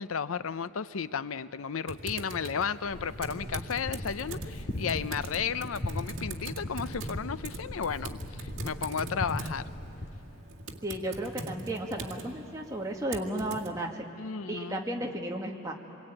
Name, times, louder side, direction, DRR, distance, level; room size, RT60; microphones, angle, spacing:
voice 1, 0.0-9.7 14.2-15.1, left 6 dB, 80° left, 14 dB, 0.6 m, -34 dB
Typing, 1.9-13.7, right 2 dB, 65° right, 2.1 m, -42 dB
sound 1, 2.9-10.1, left 1 dB, 55° left, 2.7 m, -39 dB
voice 2, 10.8-14.1 14.5-15.7, right 1 dB, 15° right, 0 dB, 1.8 m, -34 dB
27.0 x 23.5 x 9.0 m, 3.0 s
head